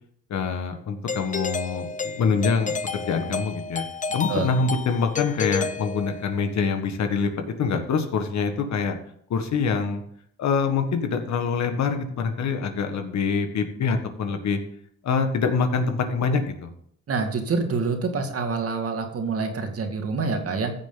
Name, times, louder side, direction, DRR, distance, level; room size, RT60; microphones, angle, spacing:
voice 1, 0.3-3.8 4.1-9.0 9.3-10.0 10.4-14.6 15.0-16.7, left 5 dB, 65° left, 6 dB, 1.7 m, -25 dB
Doorbell, 1.1-6.5, left 5 dB, 25° left, 0.7 m, -31 dB
voice 2, 17.1-20.7, right 4 dB, 50° right, 5 dB, 2.0 m, -26 dB
15.0 x 6.7 x 3.9 m, 0.65 s
cardioid pair, 90°, 30 cm